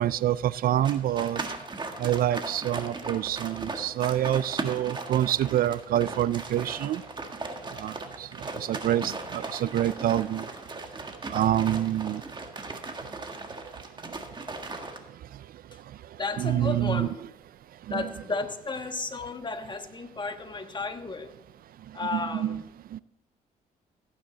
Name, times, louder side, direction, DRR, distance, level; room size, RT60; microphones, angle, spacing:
voice 1, 0.0-1.4 2.0-7.0 7.8-8.3 8.6-10.4 11.3-12.2 16.4-17.1 17.9-18.0 22.1-22.6 22.9-23.0, right 12 dB, 65° right, 19 dB, 0.4 m, -26 dB
sound 1, 0.8-15.0, right 3 dB, 30° right, 1.6 m, -38 dB
voice 2, 16.2-17.1 17.9-21.3 21.9-22.6, left 3 dB, 30° left, 7 dB, 1.3 m, -33 dB
15.5 x 9.1 x 3.9 m, 0.86 s
cardioid pair, 80°, 16 cm